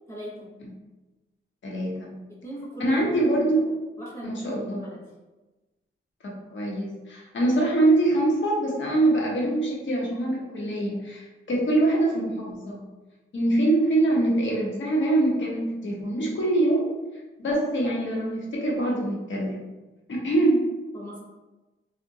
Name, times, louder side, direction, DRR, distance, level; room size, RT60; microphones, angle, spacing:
voice 1, 0.1-0.5 2.4-3.2 4.0-4.4 4.7-5.0 20.9-21.2, equal, 10° left, -6 dB, 0.8 m, -38 dB
voice 2, 1.6-2.2 2.8-3.8 4.2-4.8 6.2-12.8 13.3-16.9 17.4-19.6 20.1-20.7, right 2 dB, 65° left, -3 dB, 0.8 m, -24 dB
3.7 x 2.1 x 2.6 m, 1.1 s
wide cardioid pair, 155°, 21 cm